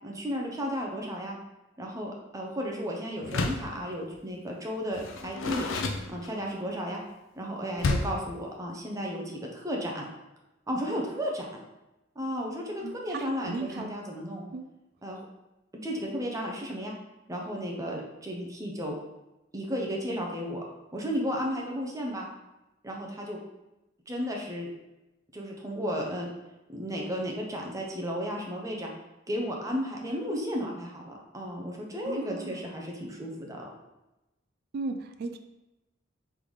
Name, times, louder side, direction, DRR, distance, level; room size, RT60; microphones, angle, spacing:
voice 1, 0.0-1.4 1.8-5.7 6.1-7.0 7.4-10.1 10.7-11.6 12.2-14.5 15.0-15.2 15.7-16.9 17.3-18.9 19.5-20.6 20.9-22.3 22.8-23.4 24.1-24.7 25.3-26.3 26.7-28.9 29.3-33.7, equal, 15° right, -1 dB, 0.6 m, -34 dB
Door, 3.2-3.8 4.9-6.6 7.8-8.3, left 3 dB, 85° left, 0.5 m, -30 dB
voice 2, 12.8-14.0 14.5-14.7 32.0-32.7 34.7-35.4, right 3 dB, 55° right, 7 dB, 0.3 m, -36 dB
3.9 x 3.4 x 3.1 m, 0.99 s
head